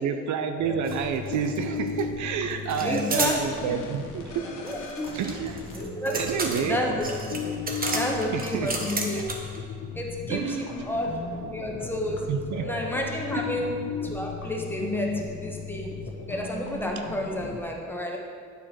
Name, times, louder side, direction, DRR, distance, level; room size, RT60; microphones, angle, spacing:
voice 1, 0.0-4.5 5.1-5.6 6.1-6.8 8.3-8.7 10.3-10.7 12.3-12.7 13.3-13.4, right 7 dB, 70° right, 7 dB, 0.6 m, -29 dB
sound 1, 0.6-17.6, left 4 dB, 80° left, 1.1 m, -35 dB
sound 2, 0.8-1.0 1.3-2.0 2.7-3.4 4.7-9.6, right 3 dB, 30° right, 1.1 m, -32 dB
voice 2, 2.8-3.9 4.6-5.1 5.7-6.2 6.6-7.1 7.9-9.3 9.9-11.2 11.5-12.2 12.6-13.7 14.0-15.9 16.3-18.2, equal, 5° left, 0 dB, 1.2 m, -31 dB
9.2 x 4.6 x 4.4 m, 2.2 s
cardioid pair, 90°, 30 cm